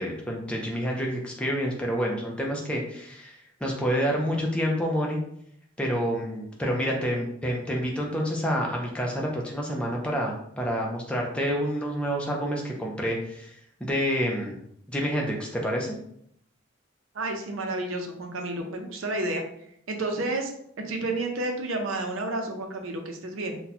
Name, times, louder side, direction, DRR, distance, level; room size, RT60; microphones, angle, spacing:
voice 1, 0.0-5.2 5.8-13.5 13.8-14.6 14.9-16.0, equal, 5° left, -1 dB, 0.5 m, -28 dB
voice 2, 17.1-19.4 19.9-20.5 20.8-23.6, right 2 dB, 85° right, 4 dB, 0.6 m, -30 dB
2.7 x 2.2 x 4.1 m, 0.71 s
head